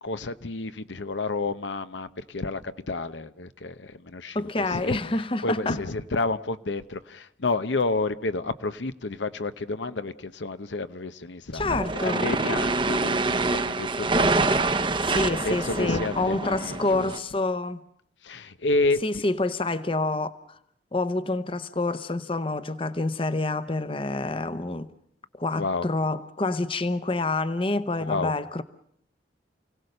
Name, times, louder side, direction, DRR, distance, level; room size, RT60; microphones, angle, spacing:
voice 1, 0.0-5.0 5.4-17.1 18.2-19.2 25.5-25.9 28.0-28.3, left 3 dB, 85° left, 0.9 m, -30 dB
voice 2, 4.3-5.8 11.5-12.3 15.0-17.8 19.0-20.6 20.9-24.9 25.3-28.6, left 2 dB, 30° left, 0.8 m, -27 dB
sound 1, 11.6-17.2, right 3 dB, 25° right, 0.8 m, -26 dB
29.0 x 17.5 x 6.7 m
head